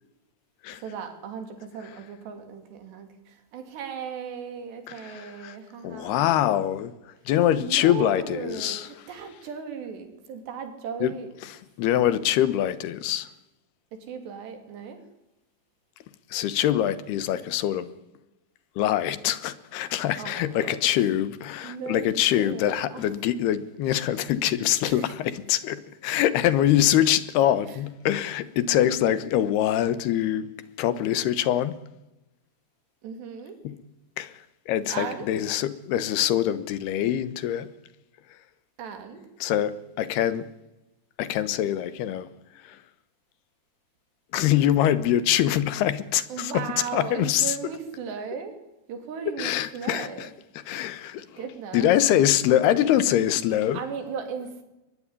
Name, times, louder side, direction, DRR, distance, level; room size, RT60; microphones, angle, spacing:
voice 1, 0.8-6.4 7.6-11.3 13.9-15.0 20.2-21.0 21.6-23.1 23.9-24.0 24.8-25.1 27.7-27.8 33.0-33.6 34.9-35.3 38.8-39.3 46.3-48.5 48.9-50.3 51.4-51.9 53.7-54.6, right 6 dB, 85° right, 5.1 m, -37 dB
voice 2, 4.9-5.6 5.8-6.9 7.3-8.9 11.0-11.1 11.8-13.3 16.3-17.9 18.8-30.5 30.8-31.8 33.6-33.7 34.2-34.3 34.7-37.7 39.4-40.5 41.2-42.3 42.7-42.8 44.3-46.7 46.9-47.5 49.4-50.3 50.7-51.2 51.7-53.8, left 11 dB, 80° left, 3.0 m, -24 dB
22.5 x 20.5 x 9.9 m
omnidirectional pair, 4.8 m